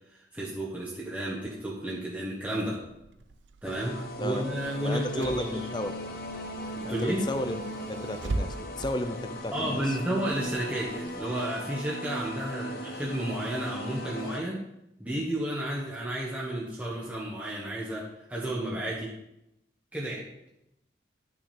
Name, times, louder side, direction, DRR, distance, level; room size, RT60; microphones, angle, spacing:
voice 1, 0.1-2.8 3.6-5.6 6.8-7.2 9.5-14.6 15.0-19.1 19.9-20.3, right 1 dB, 10° right, -5 dB, 1.2 m, -32 dB
Car / Engine, 2.8-11.1, right 2 dB, 90° right, 0.6 m, -41 dB
sound 1, 3.6-14.4, equal, 55° left, 1.2 m, -38 dB
voice 2, 4.2-4.5 4.8-5.4 5.7-5.9 6.8-10.0, left 1 dB, 25° left, 8 dB, 0.6 m, -33 dB
11.5 x 6.1 x 4.3 m, 0.84 s
head